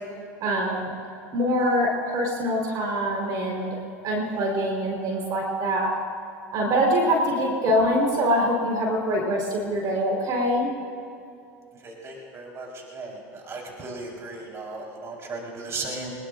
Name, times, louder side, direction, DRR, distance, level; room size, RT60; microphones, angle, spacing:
voice 1, 0.4-0.9 1.3-3.8 4.0-5.9 6.5-10.7, equal, 55° right, 0 dB, 4.4 m, -24 dB
voice 2, 11.8-16.1, right 3 dB, 35° right, -2 dB, 4.4 m, -36 dB
24.0 x 21.5 x 2.6 m, 2.4 s
hypercardioid pair, 90°, 8 cm